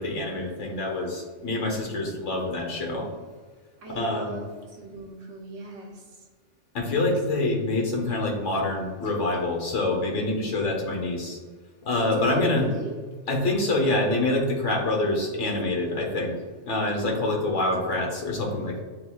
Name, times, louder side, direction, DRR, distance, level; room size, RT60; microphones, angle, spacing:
voice 1, 0.0-3.1 3.9-4.4 6.7-11.4 11.8-12.7 13.3-16.4 16.7-18.8, left 2 dB, 75° left, 0 dB, 1.2 m, -26 dB
voice 2, 3.8-6.2 6.9-7.2 12.1-13.0 16.8-17.0, right 2 dB, 80° right, 0 dB, 1.2 m, -38 dB
7.6 x 2.7 x 2.3 m, 1.4 s
omnidirectional pair, 1.3 m